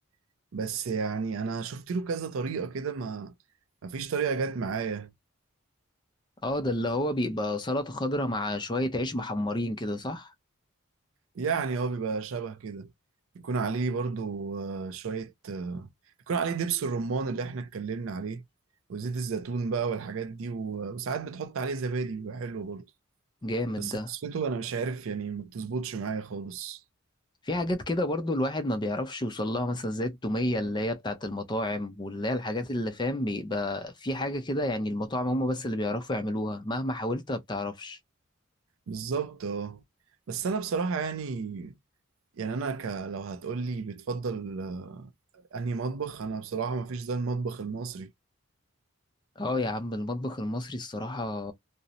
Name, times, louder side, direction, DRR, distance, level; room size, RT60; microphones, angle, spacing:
voice 1, 0.5-3.3 3.8-5.1 11.4-12.9 13.4-15.9 16.3-18.4 18.9-22.9 23.8-26.8 38.9-39.8 40.3-41.7 42.4-45.1 45.5-48.1, right 5 dB, 70° right, 0.4 m, -32 dB
voice 2, 6.4-10.3 23.4-24.1 27.4-38.0 49.4-51.5, left 1 dB, 20° left, 0.4 m, -30 dB
2.5 x 2.0 x 2.7 m
head